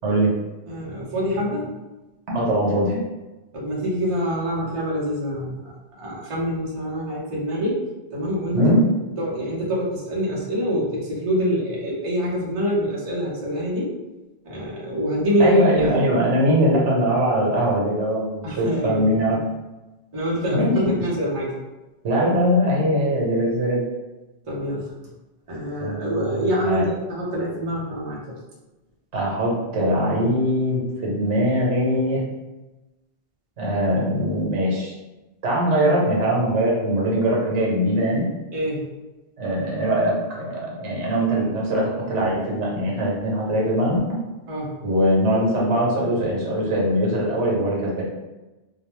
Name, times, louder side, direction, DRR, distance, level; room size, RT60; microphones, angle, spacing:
voice 1, 0.7-1.7 3.5-5.7 6.0-7.8 8.1-8.8 9.2-13.9 14.4-15.6 18.4-19.1 20.1-21.5 24.5-24.9 25.5-28.3 38.5-38.9 44.5-44.8, equal, 35° right, -5 dB, 0.7 m, -25 dB
voice 2, 2.3-3.0 8.5-8.9 15.4-19.4 20.5-20.9 22.0-23.8 25.8-26.9 29.1-32.2 33.6-34.9 35.4-38.3 39.4-44.2 44.8-48.0, equal, 80° right, -3 dB, 1.1 m, -21 dB
2.4 x 2.1 x 3.0 m, 1.1 s
omnidirectional pair, 1.2 m